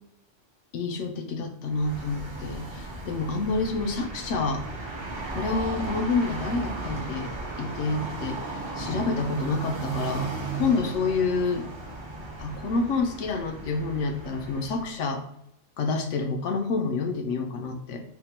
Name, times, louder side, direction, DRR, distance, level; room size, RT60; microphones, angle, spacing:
voice 1, 0.7-4.6 5.3-7.3 7.6-8.4 8.8-11.7 12.4-15.2 15.8-18.0, left 4 dB, 80° left, 5 dB, 0.9 m, -28 dB
sound 1, 1.7-15.0, right 3 dB, 30° right, 0.6 m, -35 dB
3.6 x 2.2 x 4.1 m, 0.77 s
omnidirectional pair, 1.2 m